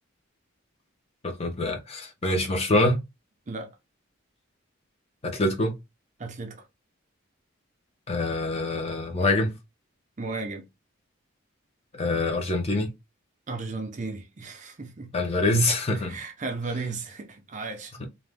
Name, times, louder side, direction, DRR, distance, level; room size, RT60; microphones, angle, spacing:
voice 1, 1.2-3.0 5.2-5.8 8.1-9.5 11.9-12.9 15.1-16.2 18.0-18.1, left 2 dB, 30° left, 0.6 m, -25 dB
voice 2, 6.2-6.7 10.2-10.7 13.5-15.1 16.0-17.9, right 3 dB, 35° right, 0.5 m, -35 dB
2.5 x 2.1 x 3.3 m
head